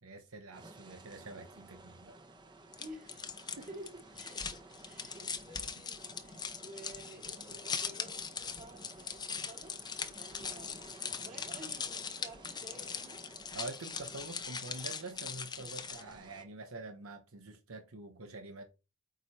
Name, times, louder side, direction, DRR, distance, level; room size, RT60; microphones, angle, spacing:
voice 1, 0.0-2.1 3.6-3.7 13.5-18.6, right 2 dB, 85° right, 1.0 m, -46 dB
sound 1, 0.5-16.4, right 2 dB, 20° right, 1.0 m, -55 dB
sound 2, 2.7-16.2, left 6 dB, 20° left, 0.7 m, -41 dB
voice 2, 2.8-3.3 3.7-4.4 4.8-9.8 10.0-10.9 11.2-13.2, right 1 dB, 40° right, 2.5 m, -52 dB
9.0 x 5.0 x 4.2 m
head